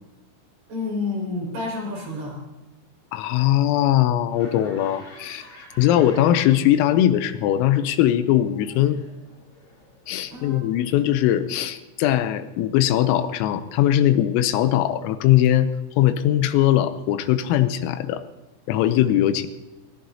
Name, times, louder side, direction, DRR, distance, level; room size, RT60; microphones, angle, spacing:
voice 1, 0.7-2.4 10.3-10.7, left 3 dB, 55° right, -3 dB, 7.0 m, -29 dB
voice 2, 3.1-5.5 5.8-9.0 10.1-15.7 16.0-18.2 18.7-19.5, left 12 dB, 85° left, 11 dB, 3.5 m, -20 dB
Laughter, 4.3-7.1 7.4-10.3, left 2 dB, 70° left, 7.8 m, -48 dB
20.5 x 18.0 x 2.8 m, 1.1 s
omnidirectional pair, 5.9 m